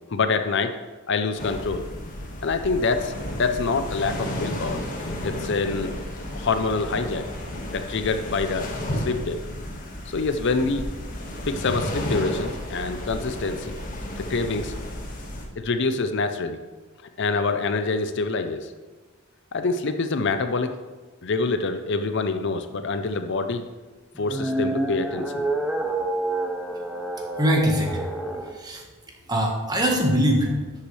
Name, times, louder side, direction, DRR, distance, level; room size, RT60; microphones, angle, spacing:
voice 1, 0.1-0.8 1.1-1.9 2.4-4.8 5.2-5.9 6.3-7.3 7.7-9.4 10.1-10.9 11.5-13.8 14.2-14.7 15.6-16.6 17.2-18.7 19.5-20.7 21.2-23.6 24.2-25.5, left 4 dB, 55° left, 8 dB, 0.6 m, -26 dB
sound 1, 1.4-15.5, left 1 dB, 40° left, 1.6 m, -32 dB
sound 2, 24.1-28.5, right 2 dB, ahead, 0.7 m, -28 dB
voice 2, 27.4-28.0 28.5-28.9 29.3-30.6, equal, 20° right, 1 dB, 1.4 m, -22 dB
12.0 x 8.5 x 3.3 m, 1.3 s
head